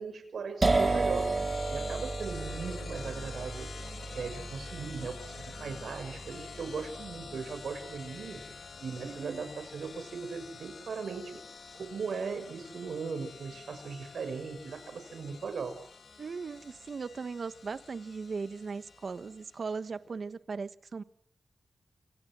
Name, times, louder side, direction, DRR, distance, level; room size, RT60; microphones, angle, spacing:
voice 1, 0.0-1.3 1.7-8.4 8.8-11.4 11.7-15.8, right 5 dB, 80° right, 8 dB, 6.3 m, -38 dB
Electric Bowed Metal, 0.6-19.8, left 5 dB, 65° left, 3.7 m, -48 dB
sound 1, 0.6-8.2, right 3 dB, 30° right, 2.5 m, -33 dB
voice 2, 9.0-9.4 16.2-21.0, right 4 dB, 50° right, 14 dB, 1.3 m, -38 dB
28.5 x 27.5 x 6.3 m, 0.64 s
wide cardioid pair, 165°, 0 cm